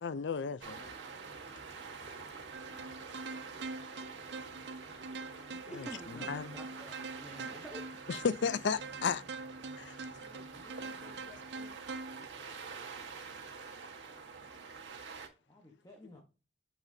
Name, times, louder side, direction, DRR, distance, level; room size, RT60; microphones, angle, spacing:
voice 1, 0.0-0.9 4.4-4.5 5.8-5.9 6.3-6.5 8.1-9.2 9.8-9.9, left 5 dB, 70° left, 0.4 m, -33 dB
sound 1, 0.6-15.3, right 4 dB, 80° right, 1.5 m, -47 dB
sound 2, 2.5-12.3, right 4 dB, 65° right, 0.5 m, -45 dB
voice 2, 5.6-7.8, equal, 5° right, 0.7 m, -48 dB
voice 3, 10.2-11.8 15.5-16.2, left 2 dB, 20° left, 1.0 m, -57 dB
7.1 x 5.9 x 2.7 m
head